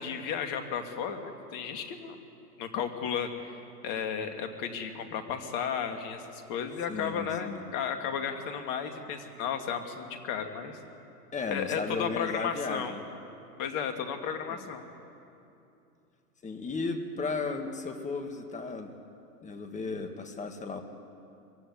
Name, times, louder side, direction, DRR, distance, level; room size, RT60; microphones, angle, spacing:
voice 1, 0.0-2.2 2.6-3.6 3.8-10.8 11.5-12.9 13.6-14.8, left 7 dB, 40° left, 6 dB, 2.4 m, -34 dB
voice 2, 6.9-7.7 11.3-13.1 14.5-14.7 16.4-18.9 19.4-20.8, left 3 dB, 15° left, 6 dB, 1.9 m, -35 dB
23.0 x 16.0 x 9.7 m, 2.7 s
hypercardioid pair, 105°, 47 cm